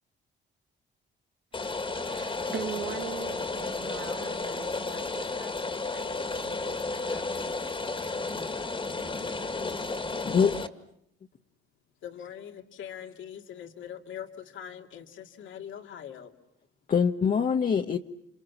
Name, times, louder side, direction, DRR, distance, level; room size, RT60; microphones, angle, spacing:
Rain, 1.5-10.7, left 3 dB, 25° left, 2.1 m, -33 dB
voice 1, 1.9-7.3, right 8 dB, 75° right, 2 dB, 1.9 m, -42 dB
voice 2, 9.9-10.6 16.9-18.0, left 6 dB, 45° left, 3 dB, 1.2 m, -24 dB
voice 3, 12.0-16.3, left 9 dB, 75° left, 5 dB, 2.4 m, -42 dB
30.0 x 26.5 x 7.3 m, 0.74 s
cardioid pair, 90°, 20 cm